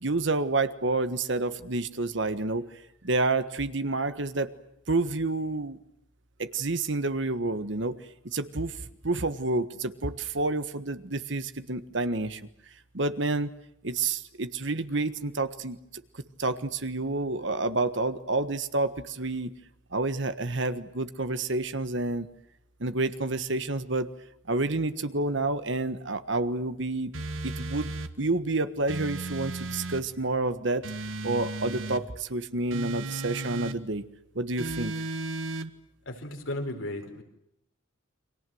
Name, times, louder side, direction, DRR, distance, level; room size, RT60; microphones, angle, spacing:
voice 1, 0.0-2.7 3.0-4.5 4.9-5.8 6.4-8.0 8.2-8.7 9.0-12.4 12.9-13.5 13.8-15.8 16.4-19.5 19.9-22.3 22.8-24.1 24.5-27.1 27.4-27.9 28.2-30.8 31.2-34.0 34.3-34.9, right 2 dB, 65° right, 11 dB, 1.5 m, -29 dB
sound 1, 27.1-28.1 28.9-30.1 30.8-32.0 32.7-33.8 34.6-35.7, right 2 dB, 80° right, 1.5 m, -35 dB
voice 2, 36.1-37.2, left 1 dB, 80° left, 4 dB, 4.6 m, -35 dB
29.5 x 24.0 x 7.9 m, 0.79 s
head